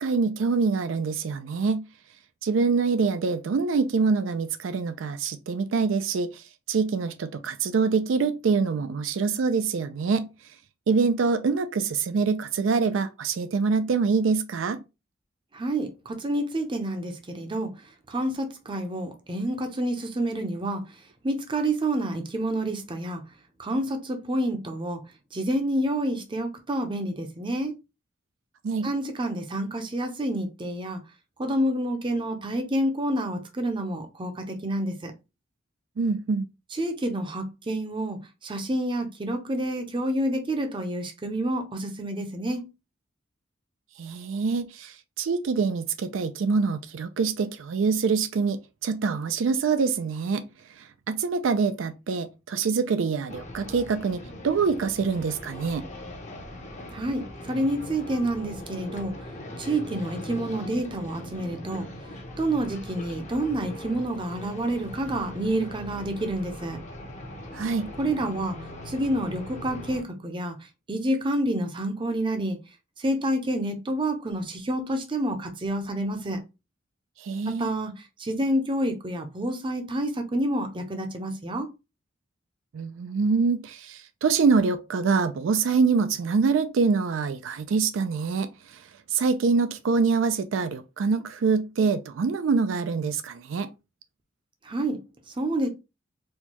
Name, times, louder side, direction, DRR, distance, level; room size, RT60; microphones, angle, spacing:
voice 1, 0.0-1.8 2.4-10.3 10.9-14.8 28.6-28.9 36.0-36.5 44.0-50.4 50.8-55.9 67.5-67.9 77.2-77.7 82.7-88.8 89.1-93.7, right 4 dB, 75° right, 0.4 m, -25 dB
voice 2, 15.5-17.7 18.1-20.8 21.2-23.2 23.6-25.0 25.3-27.8 28.8-31.0 31.4-35.1 36.8-42.7 56.9-59.1 59.6-61.9 62.4-66.8 68.0-68.6 68.9-70.6 70.9-72.6 73.0-76.4 77.6-77.9 78.2-81.7 94.6-95.7, right 1 dB, 25° right, 0.6 m, -28 dB
sound 1, 53.3-70.0, left 1 dB, 35° left, 0.7 m, -40 dB
4.4 x 2.2 x 2.8 m
head